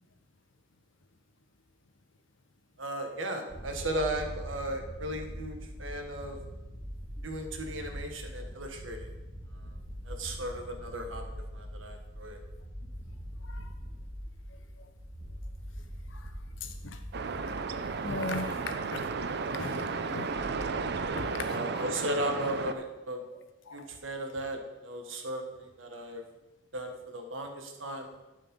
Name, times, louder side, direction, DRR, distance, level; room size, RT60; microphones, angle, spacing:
voice 1, 2.8-6.4 7.2-9.1 10.0-11.2 11.5-12.4 21.4-23.2 23.7-26.2 26.7-28.1, right 1 dB, 85° right, 4 dB, 1.5 m, -36 dB
sound 1, 3.5-21.1, equal, 25° right, 1.8 m, -43 dB
voice 2, 13.4-13.7 16.1-16.3 16.6-17.0 18.0-21.9 22.4-22.5 23.7-24.0, left 3 dB, 75° left, 8 dB, 1.0 m, -40 dB
sound 2, 17.1-22.7, right 4 dB, 60° right, 0.6 m, -34 dB
11.5 x 5.5 x 5.4 m, 1.1 s
head